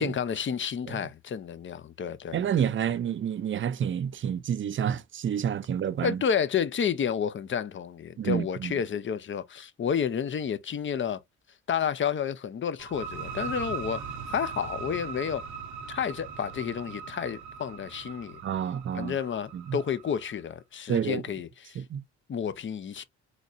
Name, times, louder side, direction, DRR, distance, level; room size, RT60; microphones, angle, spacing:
voice 1, 0.0-2.4 6.0-11.2 11.7-14.0 14.3-15.4 15.9-18.4 18.9-21.8 22.3-23.0, left 7 dB, 40° left, 0.7 m, -30 dB
voice 2, 2.3-6.2 8.2-8.7 18.4-19.2 19.5-19.8 20.9-21.2 21.8-22.0, right 9 dB, 40° right, 0.5 m, -29 dB
sound 1, 12.8-20.3, right 5 dB, 80° right, 0.9 m, -39 dB
4.1 x 3.1 x 2.6 m
cardioid pair, 90°, 30 cm